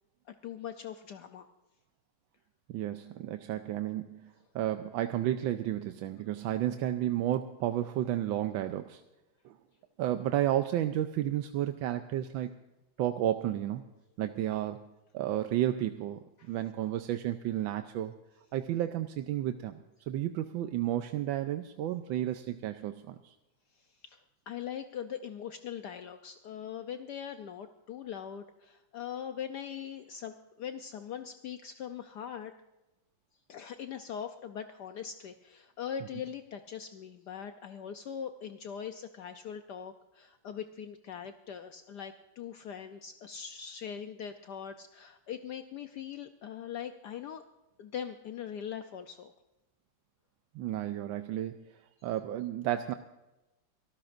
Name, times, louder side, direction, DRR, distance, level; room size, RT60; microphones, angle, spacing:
voice 1, 0.3-1.5 16.4-16.6 23.8-32.5 33.5-47.4 47.8-49.3, left 8 dB, 65° left, 7 dB, 1.2 m, -41 dB
voice 2, 2.7-9.0 9.4-9.5 10.0-12.5 13.0-13.9 14.2-14.9 15.1-16.2 16.5-18.1 18.5-19.8 20.1-23.3 50.5-51.6 52.0-52.9, right 12 dB, 85° right, 8 dB, 1.4 m, -32 dB
26.0 x 13.0 x 2.6 m, 1.0 s
omnidirectional pair, 2.1 m